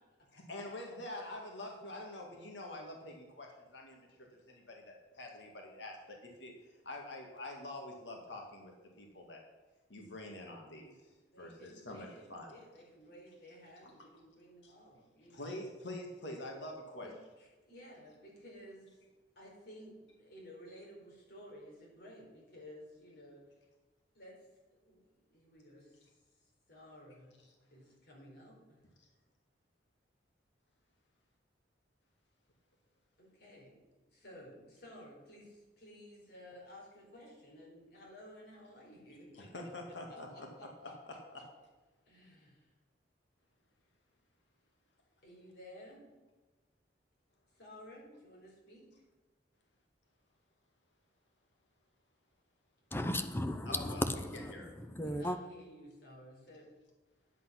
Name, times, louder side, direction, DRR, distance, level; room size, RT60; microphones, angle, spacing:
voice 1, 0.3-6.5 6.8-9.4 9.9-11.0 11.4-12.5 13.8-13.9 14.6-14.7 15.3-17.1 39.3-40.7 41.1-41.2 53.7-54.1 54.5-54.7, left 1 dB, 75° left, 1 dB, 2.0 m, -46 dB
voice 2, 11.1-15.7 17.0-19.1 19.3-23.4 24.1-27.3 27.7-28.8 33.2-39.5 40.1-40.9 41.3-41.4 42.1-42.7 45.2-46.1 47.5-48.9 55.0-56.7, equal, 60° left, -3 dB, 4.7 m, -55 dB
voice 3, 52.9-55.4, left 1 dB, 10° left, 8 dB, 0.7 m, -35 dB
10.5 x 8.3 x 5.9 m, 1.2 s
head